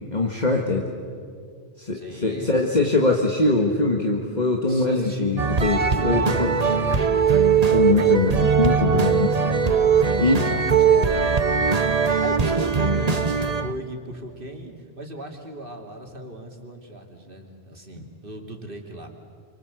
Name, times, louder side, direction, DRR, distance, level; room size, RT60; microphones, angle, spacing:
voice 1, 0.1-0.9 1.8-6.5 7.7-9.3 9.6-10.4 18.0-18.1, left 3 dB, 45° left, 1 dB, 2.0 m, -22 dB
voice 2, 1.9-3.0 4.7-5.5 5.9-7.3 7.9-8.3 8.9-9.4 10.2-19.1, right 1 dB, 60° right, 2 dB, 3.1 m, -37 dB
sound 1, 5.4-13.7, right 6 dB, 40° right, 1.2 m, -20 dB
28.0 x 25.0 x 8.2 m, 2.2 s
omnidirectional pair, 1.0 m